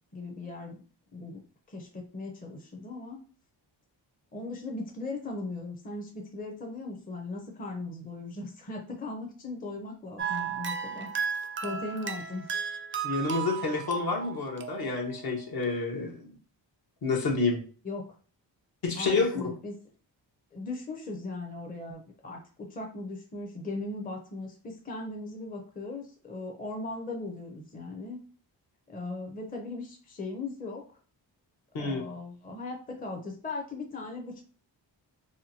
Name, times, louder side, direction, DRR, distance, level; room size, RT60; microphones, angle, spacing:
voice 1, 0.1-0.8 1.1-1.4 1.7-3.2 4.3-11.1 11.6-12.5 17.8-18.0 18.9-19.7 20.5-28.2 28.9-30.9 31.8-34.4, left 2 dB, 20° left, 2 dB, 0.5 m, -38 dB
sound 1, 10.2-15.3, right 7 dB, 30° right, 0.4 m, -35 dB
voice 2, 13.0-16.3 17.0-17.6 18.8-19.4 31.7-32.0, left 3 dB, 55° left, 2 dB, 0.9 m, -29 dB
2.8 x 2.2 x 2.7 m, 0.39 s
cardioid pair, 60°, 45 cm